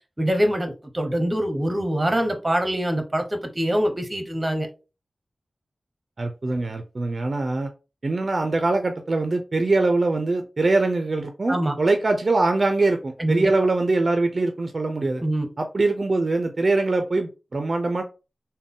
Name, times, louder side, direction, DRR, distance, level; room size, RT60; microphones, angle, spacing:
voice 1, 0.2-4.7 11.5-11.7 13.2-13.5 15.2-15.5, right 1 dB, 20° right, 0.8 m, -24 dB
voice 2, 6.2-7.7 8.0-15.2 15.6-18.0, right 2 dB, 50° right, 0.4 m, -23 dB
3.7 x 2.2 x 3.6 m
wide cardioid pair, 90°, 0 cm